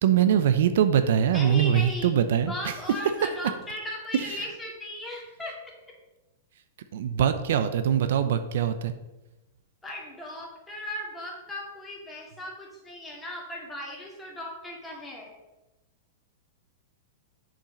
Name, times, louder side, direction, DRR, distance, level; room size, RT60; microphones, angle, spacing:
voice 1, 0.0-2.7 4.4-4.5 6.9-8.9, right 9 dB, 70° right, 10 dB, 0.6 m, -23 dB
voice 2, 1.3-2.1 2.5-5.6 9.8-15.3, left 1 dB, 10° left, -2 dB, 2.2 m, -37 dB
7.2 x 5.2 x 5.2 m, 1.0 s
hypercardioid pair, 135°, 0 cm